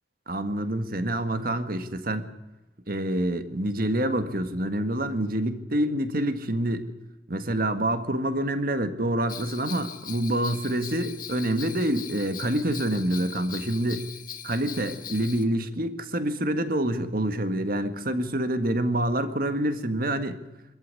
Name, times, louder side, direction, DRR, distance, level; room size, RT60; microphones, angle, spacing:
voice 1, 0.3-2.3 2.9-6.9 7.3-14.1 14.4-20.4, right 1 dB, 50° right, 9 dB, 1.8 m, -27 dB
Bell, 9.3-15.4, left 9 dB, 45° left, 1.7 m, -41 dB
25.5 x 14.0 x 9.8 m, 1.0 s
head